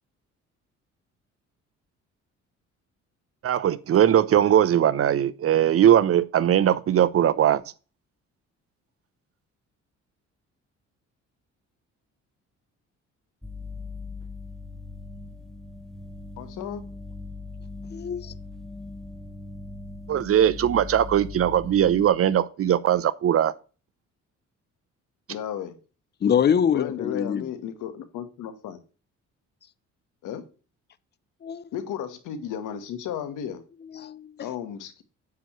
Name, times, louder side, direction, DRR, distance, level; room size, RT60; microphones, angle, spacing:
voice 1, 3.4-7.6 20.1-23.5, right 10 dB, 50° right, 0.6 m, -20 dB
sound 1, 13.4-22.1, left 3 dB, ahead, 0.9 m, -39 dB
voice 2, 16.4-16.8 25.3-25.7 26.7-28.8 30.2-30.4 31.7-33.6 34.4-35.0, left 9 dB, 85° left, 1.3 m, -34 dB
voice 3, 17.9-18.3 26.2-27.4 31.4-31.6 33.9-34.3, left 8 dB, 35° left, 0.6 m, -24 dB
9.4 x 7.8 x 3.1 m
cardioid pair, 90°, 30 cm